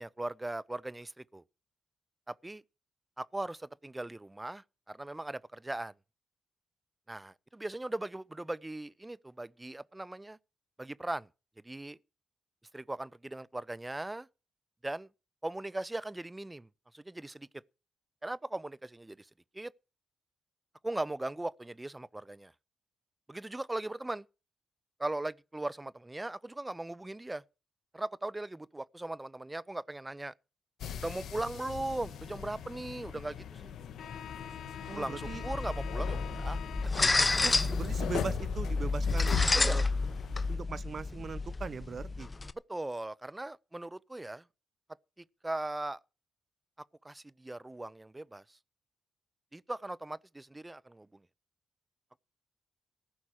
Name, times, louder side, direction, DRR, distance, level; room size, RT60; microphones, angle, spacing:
voice 1, 0.0-1.4 2.3-2.6 3.2-5.9 7.1-10.4 10.8-11.3 11.6-12.0 12.7-14.3 14.8-15.1 15.4-16.7 16.9-17.5 18.2-19.3 19.5-19.7 20.8-22.5 23.3-24.2 25.0-27.4 27.9-30.3 31.0-33.7 34.9-36.6 39.5-39.8 42.7-44.4 45.2-46.0 47.0-48.4 49.5-51.2, right 2 dB, 20° right, 0.6 m, -39 dB
sound 1, 30.8-40.6, left 8 dB, 75° left, 1.6 m, -39 dB
voice 2, 34.9-35.5 37.4-39.8 40.5-42.3, right 5 dB, 55° right, 1.0 m, -40 dB
sound 2, 35.2-42.5, left 3 dB, 30° left, 0.9 m, -30 dB
14.5 x 6.1 x 8.8 m
supercardioid pair, 55°, 0 cm